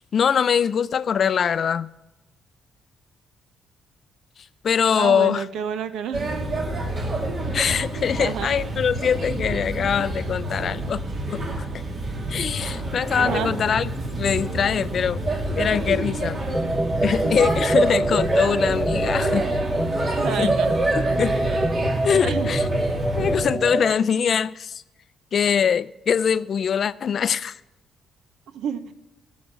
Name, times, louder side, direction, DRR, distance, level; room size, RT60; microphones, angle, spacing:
voice 1, 0.1-1.9 4.6-5.4 7.5-11.0 11.3-11.7 12.3-13.9 14.2-15.2 15.6-16.4 17.0-19.5 20.4-20.6 21.0-21.4 22.0-22.7 23.2-24.8 25.3-27.6, left 7 dB, 55° left, 0.4 m, -23 dB
voice 2, 5.0-6.3 7.4-7.5 8.1-8.6 13.2-13.5 20.2-20.7 22.2-22.5 28.5-28.9, right 8 dB, 80° right, 0.7 m, -29 dB
Male speech man speaking / Child speech kid speaking / Chatter, 6.1-23.4, right 1 dB, 45° right, 2.5 m, -27 dB
sound 1, 16.5-23.9, right 1 dB, 10° right, 0.4 m, -26 dB
12.5 x 6.4 x 7.7 m
cardioid pair, 90°, 0 cm